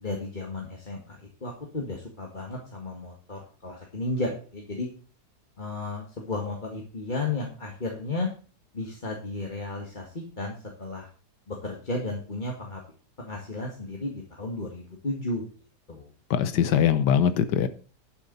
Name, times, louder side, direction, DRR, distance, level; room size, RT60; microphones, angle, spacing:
voice 1, 0.0-4.9 5.6-8.3 8.7-11.1 11.5-12.8 13.2-15.4 15.9-16.1, left 2 dB, 30° left, 2.0 m, -33 dB
voice 2, 16.3-17.7, left 9 dB, 90° left, 1.5 m, -22 dB
12.0 x 9.4 x 4.1 m
omnidirectional pair, 1.8 m